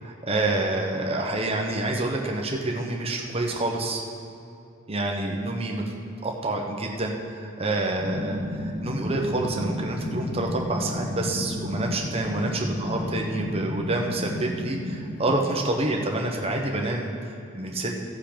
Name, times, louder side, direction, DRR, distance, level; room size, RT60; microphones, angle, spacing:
voice 1, 0.0-4.0 4.9-5.9 6.2-18.0, right 2 dB, 25° right, 1 dB, 1.0 m, -28 dB
sound 1, 8.0-15.3, left 1 dB, 5° right, 1.7 m, -32 dB
16.0 x 5.7 x 5.1 m, 2.6 s
head